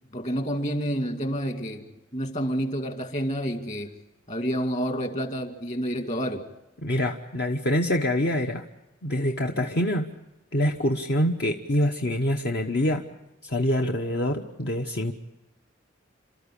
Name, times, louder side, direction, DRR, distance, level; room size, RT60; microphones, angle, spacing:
voice 1, 0.1-1.8 2.1-3.9 4.3-6.4, equal, 40° left, 2.2 m, -29 dB
voice 2, 6.8-8.6 9.0-10.1 10.5-13.0 13.4-15.1, left 1 dB, 60° left, 1.2 m, -25 dB
29.5 x 13.5 x 10.0 m
head